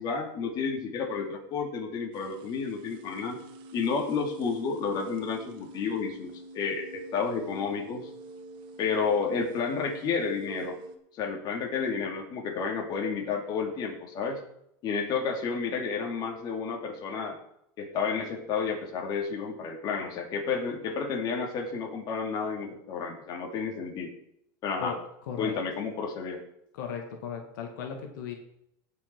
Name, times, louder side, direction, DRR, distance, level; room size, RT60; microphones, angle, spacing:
voice 1, 0.0-3.4 3.7-8.1 8.8-10.8 11.1-14.4 14.8-17.4 17.8-24.1 24.6-24.9 25.4-26.4, left 5 dB, 40° left, 1 dB, 2.8 m, -31 dB
sound 1, 2.1-11.0, right 2 dB, 50° right, 1.6 m, -47 dB
voice 2, 25.2-25.6 26.7-28.3, left 7 dB, 80° left, 3 dB, 1.9 m, -36 dB
17.5 x 6.0 x 4.6 m, 0.75 s
supercardioid pair, 135°, 10 cm